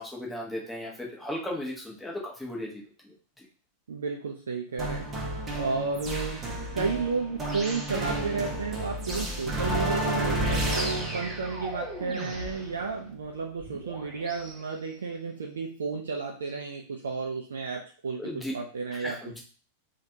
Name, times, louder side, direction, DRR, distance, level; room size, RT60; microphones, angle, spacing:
voice 1, 0.0-2.8 3.4-3.5 18.2-18.5 18.9-19.4, left 1 dB, 5° left, -4 dB, 1.0 m, -36 dB
voice 2, 3.9-18.2 18.5-19.4, right 4 dB, 70° right, 0 dB, 0.4 m, -32 dB
sound 1, 4.8-14.5, right 1 dB, 20° right, 0.8 m, -32 dB
3.2 x 2.4 x 2.8 m, 0.40 s
figure-of-eight pair, 90°, 0 cm